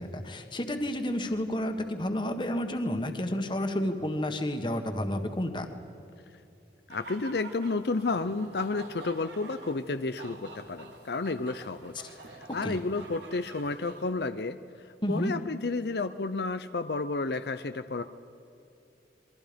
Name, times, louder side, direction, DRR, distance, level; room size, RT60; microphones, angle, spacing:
voice 1, 0.0-5.7 12.6-12.8 15.0-15.3, left 1 dB, 25° left, 6 dB, 1.6 m, -30 dB
voice 2, 6.9-18.0, left 3 dB, 70° left, 10 dB, 0.6 m, -32 dB
sound 1, 6.9-14.1, right 2 dB, 85° right, 3.6 m, -48 dB
28.0 x 23.5 x 5.2 m, 2.7 s
head